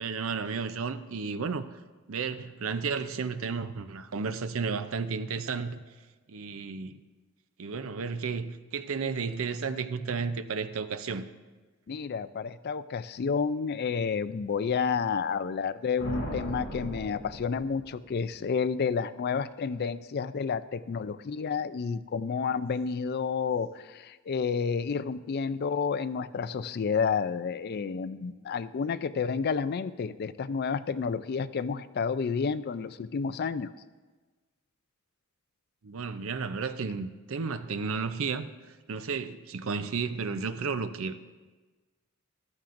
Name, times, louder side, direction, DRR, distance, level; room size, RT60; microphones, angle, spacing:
voice 1, 0.0-1.7 2.1-5.8 6.3-7.0 7.6-11.3 35.8-38.5 38.9-41.2, right 5 dB, 65° right, 0.6 m, -33 dB
voice 2, 11.9-33.7, left 5 dB, 50° left, 0.4 m, -30 dB
sound 1, 16.0-18.2, equal, 70° left, 2.6 m, -38 dB
15.0 x 13.0 x 2.6 m
head